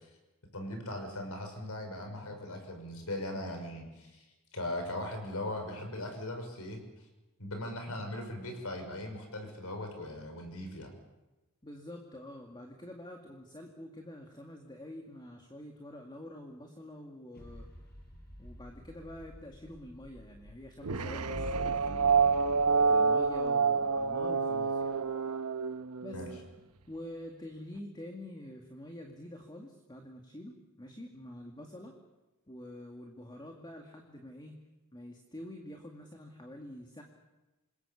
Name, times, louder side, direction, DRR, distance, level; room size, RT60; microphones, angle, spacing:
voice 1, 0.5-4.3 4.5-6.8 7.4-10.9 26.1-26.3, left 1 dB, 75° left, 5 dB, 5.9 m, -39 dB
voice 2, 11.6-17.7 18.4-22.3 22.9-25.0 26.0-26.3 26.9-31.9 32.5-34.6 34.9-37.0, left 1 dB, 20° left, 2 dB, 2.2 m, -47 dB
sound 1, 17.3-24.9, equal, 45° left, 6.0 m, -54 dB
sound 2, 20.8-26.4, right 5 dB, 90° right, 1.1 m, -28 dB
27.5 x 21.5 x 7.2 m, 1.1 s
head